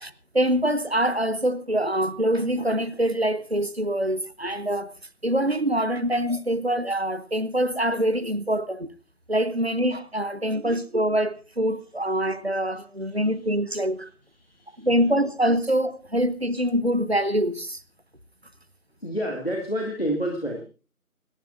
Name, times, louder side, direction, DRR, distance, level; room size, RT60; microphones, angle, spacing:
voice 1, 0.0-4.9 5.2-8.9 9.3-14.1 14.8-17.8, right 1 dB, 45° right, 0.8 m, -24 dB
voice 2, 14.4-14.9 19.0-20.6, equal, 40° left, 2.1 m, -29 dB
29.0 x 11.0 x 2.5 m
figure-of-eight pair, 175°, 45 cm